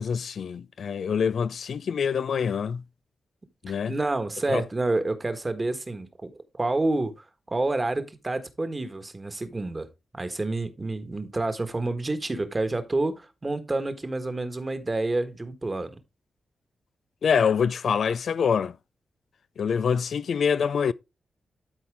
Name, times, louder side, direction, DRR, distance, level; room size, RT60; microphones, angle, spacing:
voice 1, 0.0-2.8 3.6-4.0 4.5-4.6 17.2-18.8 19.6-20.9, left 6 dB, 75° left, 0.3 m, -25 dB
voice 2, 3.7-9.9 10.1-16.0, right 2 dB, 30° right, 1.4 m, -29 dB
12.0 x 4.3 x 3.4 m
cardioid pair, 50°, 0 cm